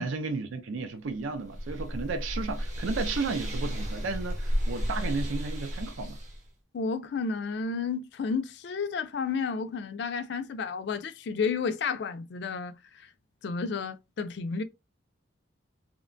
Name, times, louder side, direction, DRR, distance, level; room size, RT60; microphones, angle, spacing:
voice 1, 0.0-6.2, right 4 dB, 80° right, 0.4 m, -33 dB
sound 1, 1.1-6.5, equal, 35° right, 0.8 m, -33 dB
voice 2, 6.7-13.1 13.4-14.6, left 5 dB, 55° left, 0.3 m, -32 dB
2.8 x 2.1 x 2.5 m
head